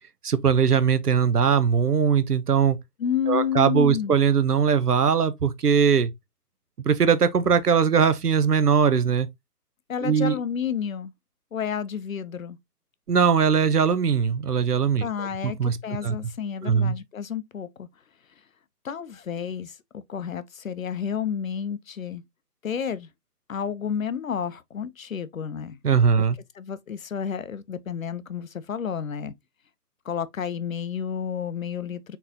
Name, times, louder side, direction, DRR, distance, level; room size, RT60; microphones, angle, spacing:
voice 1, 0.2-2.8 3.3-6.1 6.8-9.3 10.0-10.3 13.1-15.8 16.0-16.2 16.6-17.0 25.8-26.4, right 6 dB, 75° right, 0.9 m, -20 dB
voice 2, 3.0-4.2 9.9-11.1 11.5-12.6 15.0-17.9 18.8-22.2 22.6-23.1 23.5-25.8 26.6-29.3 30.1-32.2, left 8 dB, 60° left, 0.6 m, -30 dB
4.3 x 3.9 x 2.7 m
figure-of-eight pair, 140°, 47 cm